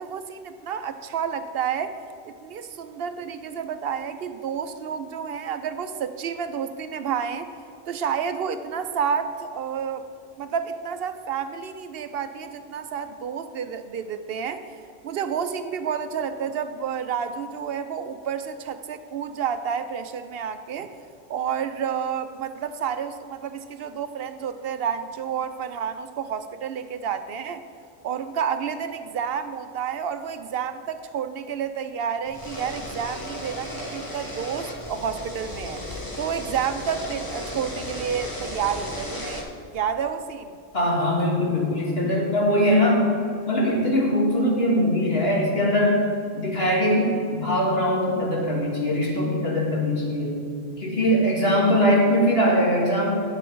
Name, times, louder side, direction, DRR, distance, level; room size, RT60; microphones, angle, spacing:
voice 1, 0.0-2.0 2.3-7.5 7.9-10.0 10.4-14.6 15.0-20.9 21.3-27.6 28.0-35.8 36.2-39.5 39.7-40.5, right 7 dB, 70° right, 10 dB, 0.7 m, -30 dB
sound 1, 32.3-39.4, left 1 dB, 20° left, 1.1 m, -35 dB
voice 2, 40.7-43.0 43.5-46.0 46.3-50.4 50.8-53.1, equal, 70° left, -3 dB, 2.1 m, -21 dB
9.8 x 7.6 x 4.6 m, 2.5 s
omnidirectional pair, 1.1 m